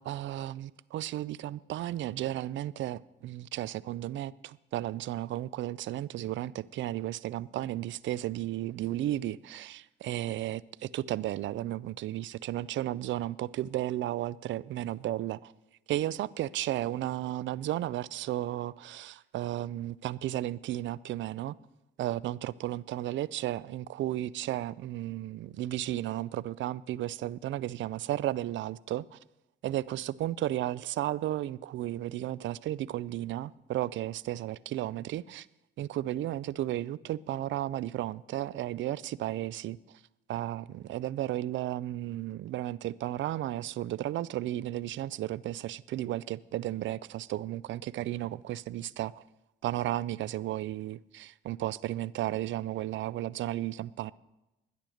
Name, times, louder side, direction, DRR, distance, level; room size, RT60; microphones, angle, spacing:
voice 1, 0.0-15.4 15.9-21.5 22.0-29.2 29.6-35.5 35.8-39.8 40.3-49.2 49.6-54.1, right 14 dB, 70° right, 0.5 m, -34 dB
12.0 x 10.0 x 6.4 m
cardioid pair, 90°, 20 cm